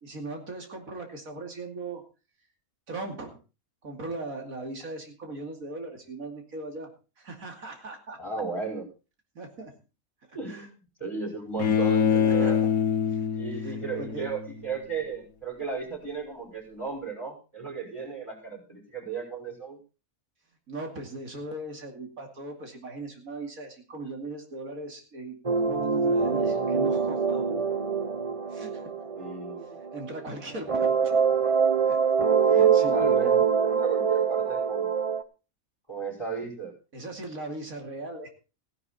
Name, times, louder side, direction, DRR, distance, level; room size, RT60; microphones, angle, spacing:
voice 1, 0.0-2.0 2.9-3.4 3.8-6.9 7.2-8.2 9.3-9.7 10.5-10.7 12.2-12.5 13.1-13.3 13.6-14.3 20.7-27.6 28.5-28.8 29.9-30.9 31.9-32.0 32.4-33.4 36.9-38.3, right 2 dB, 75° right, 3 dB, 3.0 m, -39 dB
voice 2, 8.2-8.9 10.3-10.7 11.0-12.6 13.3-19.8 29.2-29.8 32.5-34.9 35.9-36.7, right 5 dB, 20° left, 0 dB, 5.3 m, -35 dB
Bowed string instrument, 11.6-14.7, left 8 dB, 80° left, 1.7 m, -25 dB
sound 1, 25.4-30.3 30.7-35.2, right 6 dB, 30° right, 0.7 m, -24 dB
16.0 x 10.5 x 4.2 m, 0.33 s
omnidirectional pair, 1.5 m